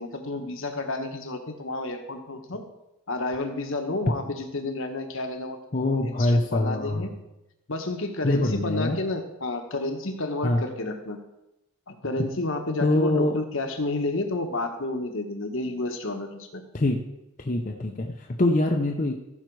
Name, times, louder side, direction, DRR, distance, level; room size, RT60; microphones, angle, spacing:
voice 1, 0.0-2.7 3.1-5.6 5.9-7.1 7.7-11.2 11.9-16.6, left 2 dB, 65° left, 5 dB, 1.2 m, -30 dB
voice 2, 5.7-7.1 8.2-9.0 10.4-10.6 12.2-12.3 12.8-13.4 16.7-17.0 17.4-19.2, left 1 dB, 35° left, 2 dB, 0.7 m, -24 dB
15.0 x 5.8 x 4.7 m, 0.92 s
head